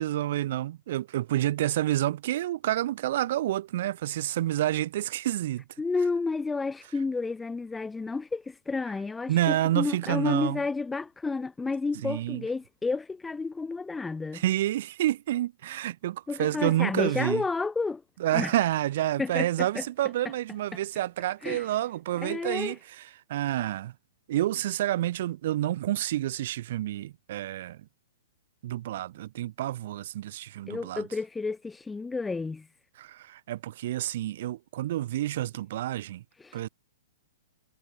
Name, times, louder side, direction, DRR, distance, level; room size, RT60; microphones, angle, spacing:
voice 1, 0.0-5.6 9.3-10.6 11.9-12.4 14.3-17.4 18.2-23.9 24.3-27.9 28.6-31.1 33.0-36.2 36.5-36.7, right 14 dB, 55° right, 3.5 m, -29 dB
voice 2, 5.8-14.4 16.3-18.0 18.3-18.5 19.2-19.8 21.4-21.6 22.2-22.8 30.7-32.7 36.4-36.6, left 4 dB, 5° left, 0.5 m, -31 dB
hypercardioid pair, 155°, 0 cm